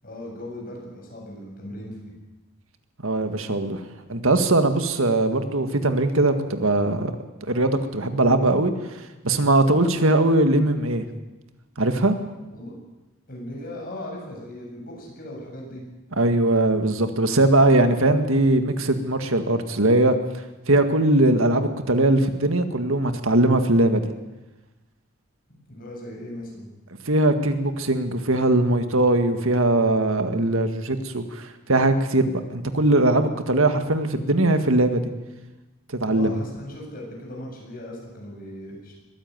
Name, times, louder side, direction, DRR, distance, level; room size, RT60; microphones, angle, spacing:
voice 1, 0.0-2.2 12.5-12.7 13.3-15.8 25.7-26.7 36.1-38.9, left 1 dB, 40° left, -1 dB, 7.6 m, -38 dB
voice 2, 3.0-3.8 4.1-7.1 7.5-8.7 9.2-11.1 11.8-12.1 16.2-20.2 20.7-24.1 27.1-35.0 36.0-36.3, right 2 dB, 75° right, 8 dB, 1.9 m, -20 dB
21.5 x 15.0 x 9.2 m, 1.1 s
head